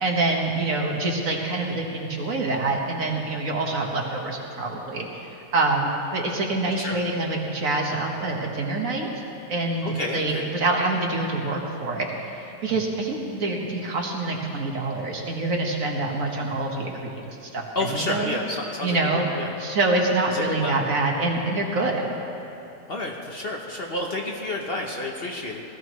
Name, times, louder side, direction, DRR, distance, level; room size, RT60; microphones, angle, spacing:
voice 1, 0.0-5.2 5.5-9.2 9.5-18.4 18.8-19.3 19.6-22.1, right 2 dB, 60° right, 0 dB, 1.7 m, -26 dB
voice 2, 9.8-10.5 17.7-19.0 19.4-19.5 20.3-20.8 22.9-25.6, left 2 dB, 45° left, 0 dB, 1.0 m, -30 dB
19.0 x 14.0 x 3.1 m, 3.0 s
omnidirectional pair, 1.7 m